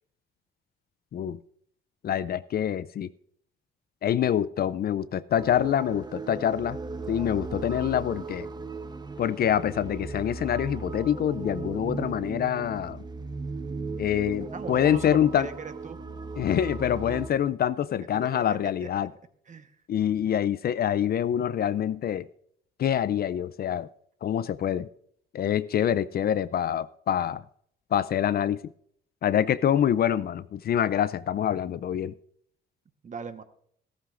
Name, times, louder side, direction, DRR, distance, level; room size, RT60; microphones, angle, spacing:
voice 1, 2.0-3.1 4.0-6.8 7.1-8.5 9.2-13.0 14.0-15.5 16.4-19.1 19.9-22.3 22.8-23.9 24.2-24.9 25.3-27.4 27.9-28.6 29.2-32.1, left 10 dB, 50° left, 0.4 m, -26 dB
sound 1, 5.4-17.3, right 3 dB, 20° right, 0.8 m, -37 dB
voice 2, 14.5-16.0 18.3-19.1 19.5-19.7 33.0-33.4, right 5 dB, 40° right, 1.1 m, -39 dB
14.5 x 13.0 x 2.5 m
cardioid pair, 90°, 20 cm